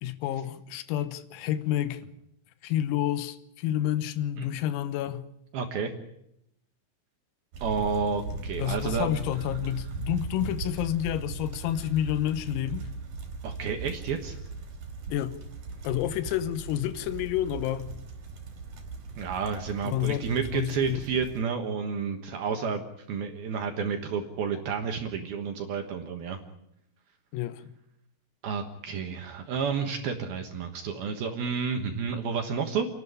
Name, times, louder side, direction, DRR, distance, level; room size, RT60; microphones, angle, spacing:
voice 1, 0.0-2.0 2.6-5.3 8.6-12.9 15.1-15.4 15.8-17.9 19.9-20.2 20.5-21.0 27.3-27.7, left 12 dB, 85° left, 3.8 m, -29 dB
voice 2, 5.5-5.9 7.6-9.1 13.4-14.4 19.2-22.8 23.1-26.4 28.4-32.9, right 6 dB, 65° right, 2.6 m, -30 dB
sound 1, 7.5-21.4, right 4 dB, 45° right, 3.9 m, -39 dB
29.5 x 12.0 x 10.0 m
omnidirectional pair, 6.0 m